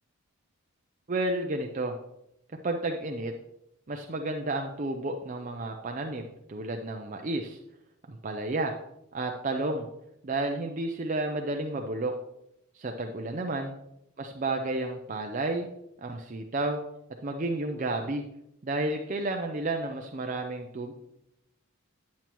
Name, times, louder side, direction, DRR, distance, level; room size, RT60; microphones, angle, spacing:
voice 1, 1.1-1.9 2.6-3.3 3.9-7.6 8.1-8.7 9.1-9.9 10.2-12.1 12.7-13.7 14.2-15.7 16.0-16.8 17.2-18.2 18.6-20.9, right 2 dB, 35° right, 3 dB, 0.5 m, -31 dB
9.0 x 8.3 x 3.0 m, 0.83 s
head